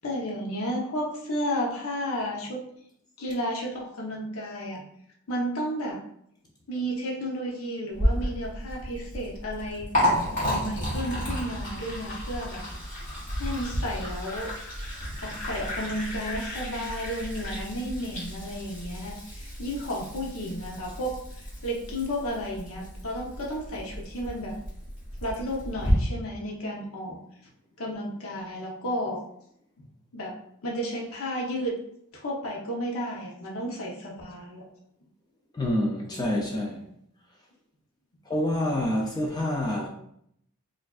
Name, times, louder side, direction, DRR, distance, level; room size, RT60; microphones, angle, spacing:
voice 1, 0.0-2.6 3.2-4.8 5.3-6.0 6.7-9.9 10.4-12.6 13.4-14.5 15.2-24.6 25.2-27.2 27.8-29.2 30.1-30.4 30.6-31.7 32.1-34.6, equal, 70° left, 0.8 m, -32 dB
Liquid, 7.9-25.9, equal, 35° left, 1.5 m, -33 dB
voice 2, 35.5-36.8 38.3-39.9, left 1 dB, 20° left, 0.4 m, -27 dB
4.5 x 2.5 x 2.4 m
head